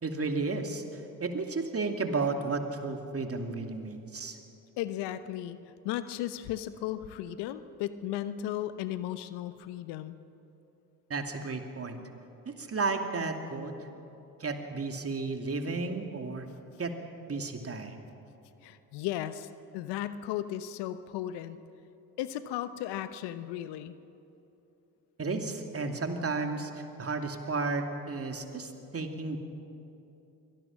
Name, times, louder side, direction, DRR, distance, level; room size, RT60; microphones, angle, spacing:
voice 1, 0.0-4.4 11.1-12.0 12.5-13.7 14.4-16.5 16.8-16.9 17.3-18.0 25.2-29.4, right 3 dB, 35° right, 5 dB, 2.7 m, -33 dB
voice 2, 4.8-5.6 5.8-10.2 18.6-21.6 22.2-23.9, left 12 dB, 70° left, 13 dB, 1.0 m, -35 dB
23.5 x 17.5 x 7.4 m, 2.9 s
hypercardioid pair, 50°, 42 cm